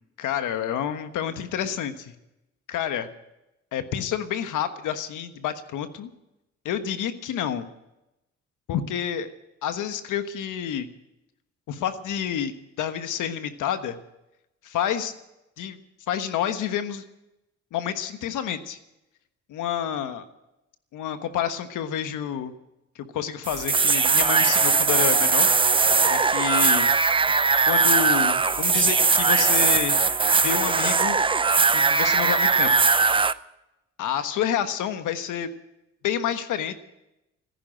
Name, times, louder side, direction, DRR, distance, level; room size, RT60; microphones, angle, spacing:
voice 1, 0.2-2.1 2.7-3.1 3.7-6.1 6.6-7.7 8.7-9.3 9.6-10.9 11.7-14.0 14.6-15.1 15.6-15.8 16.1-17.0 17.7-18.8 19.5-20.3 20.9-22.5 22.9-25.5 26.0-26.9 27.7-30.0 30.4-31.2 31.7-32.7 34.0-35.5 36.0-36.8, left 9 dB, 80° left, 9 dB, 1.3 m, -29 dB
sound 1, 23.4-33.3, right 4 dB, 15° right, 0.5 m, -20 dB
sound 2, 30.6-32.0, right 2 dB, 25° left, 2.2 m, -42 dB
15.0 x 10.5 x 9.0 m, 0.92 s
cardioid pair, 90°, 30 cm